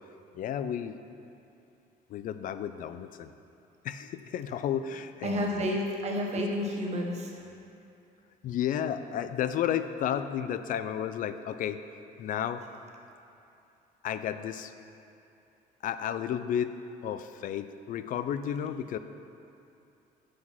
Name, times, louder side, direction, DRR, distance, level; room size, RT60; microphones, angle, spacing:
voice 1, 0.3-1.0 2.1-3.3 3.8-5.7 8.4-11.8 12.2-12.6 14.0-14.7 15.8-16.7 17.0-19.0, left 9 dB, 55° left, 11 dB, 0.4 m, -32 dB
voice 2, 5.2-7.3, left 1 dB, 40° right, 0 dB, 1.1 m, -30 dB
7.4 x 4.0 x 5.9 m, 2.8 s
cardioid pair, 110°, 17 cm